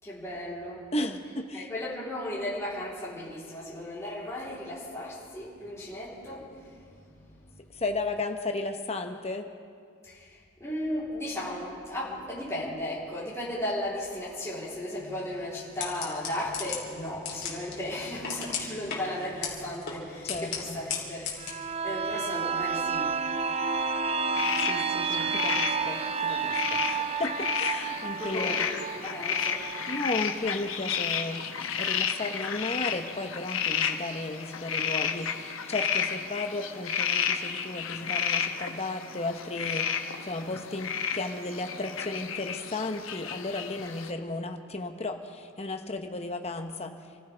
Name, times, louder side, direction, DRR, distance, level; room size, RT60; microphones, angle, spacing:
voice 1, 0.0-0.8 1.5-7.6 10.0-23.2 28.2-29.6, left 1 dB, 15° left, -9 dB, 3.6 m, -36 dB
voice 2, 0.9-1.7 7.7-9.5 20.2-20.8 24.6-28.7 29.9-31.5 31.8-39.9 40.2-47.2, left 2 dB, 30° left, 5 dB, 1.0 m, -34 dB
sound 1, 15.0-21.5, left 6 dB, 50° left, 3.2 m, -38 dB
sound 2, 21.4-31.0 31.3-31.4, right 5 dB, 30° right, 0.5 m, -31 dB
sound 3, 24.3-44.1, left 7 dB, 65° left, 1.0 m, -32 dB
27.5 x 15.0 x 3.4 m, 2.2 s
head